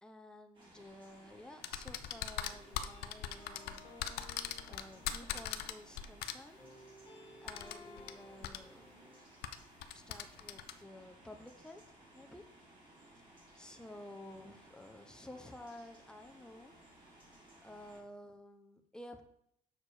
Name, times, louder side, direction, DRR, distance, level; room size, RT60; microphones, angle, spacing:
voice 1, 0.0-4.2 4.7-6.6 7.4-9.1 9.9-12.4 13.6-16.7 17.6-19.2, left 1 dB, 5° left, 5 dB, 0.8 m, -53 dB
sound 1, 0.5-18.0, right 1 dB, 30° right, 3.0 m, -60 dB
sound 2, 1.4-2.0 2.4-6.2 6.6-9.2, left 2 dB, 25° left, 2.0 m, -58 dB
sound 3, 1.6-6.3 7.5-8.1 8.4-8.6 9.4-10.7, left 10 dB, 70° left, 0.5 m, -40 dB
6.7 x 4.3 x 4.9 m, 0.72 s
cardioid pair, 110°, 17 cm